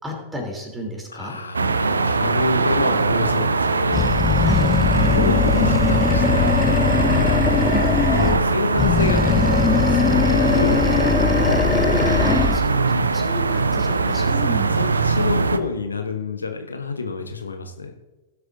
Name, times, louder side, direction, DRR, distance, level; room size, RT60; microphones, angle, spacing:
voice 1, 0.0-1.4 4.4-4.7 7.7-8.0 12.2-14.8, equal, 10° right, 1 dB, 3.2 m, -31 dB
voice 2, 1.1-4.1 4.9-7.4 8.1-11.2 14.1-17.9, left 4 dB, 75° left, 7 dB, 0.9 m, -28 dB
sound 1, 1.5-15.6, right 4 dB, 75° right, 0.5 m, -21 dB
Animal, 3.9-8.5 8.8-12.7, left 6 dB, 20° left, 0.4 m, -20 dB
18.5 x 7.9 x 2.6 m, 1.1 s
figure-of-eight pair, 90°, 0 cm